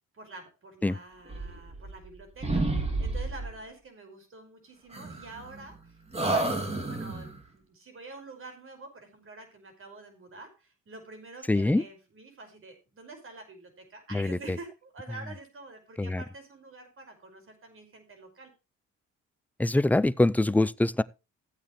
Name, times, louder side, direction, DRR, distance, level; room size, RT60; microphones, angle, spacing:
voice 1, 0.1-6.0 6.3-18.5, right 3 dB, 45° right, 5.4 m, -47 dB
sound 1, 1.3-2.1 2.4-3.6 4.9-5.8 6.1-7.4, right 2 dB, 20° right, 2.6 m, -30 dB
voice 2, 11.5-11.8 14.1-14.6 16.0-16.2 19.6-21.0, left 2 dB, 5° left, 0.5 m, -24 dB
15.0 x 8.7 x 3.1 m
cardioid pair, 90°, 30 cm